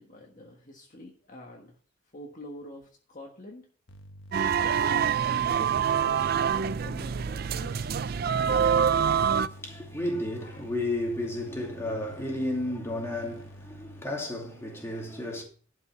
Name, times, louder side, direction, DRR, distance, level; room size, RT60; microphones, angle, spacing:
voice 1, 0.0-1.8 2.1-3.7 5.3-7.9, left 1 dB, 40° left, 1.5 m, -46 dB
sound 1, 3.9-14.0, equal, 70° left, 1.4 m, -48 dB
sound 2, 4.3-9.5, right 7 dB, 45° right, 0.4 m, -25 dB
voice 2, 9.1-15.4, left 1 dB, 15° left, 2.5 m, -33 dB
12.0 x 5.7 x 5.7 m
head